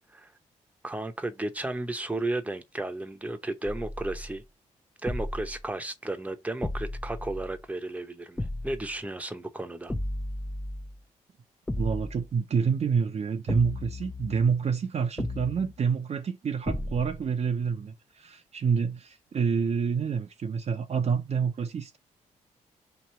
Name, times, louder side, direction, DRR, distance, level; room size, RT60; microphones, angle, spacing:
voice 1, 0.8-4.4 5.0-9.9, right 2 dB, 10° right, 0.8 m, -34 dB
sound 1, 3.7-4.4 5.1-5.7 6.6-7.7 8.4-9.0 9.9-11.0 11.7-12.3 13.5-14.6 15.2-15.8 16.7-17.3, left 1 dB, 10° left, 0.4 m, -34 dB
voice 2, 11.8-22.0, right 6 dB, 45° right, 0.6 m, -28 dB
3.0 x 2.9 x 4.2 m
supercardioid pair, 50°, 15 cm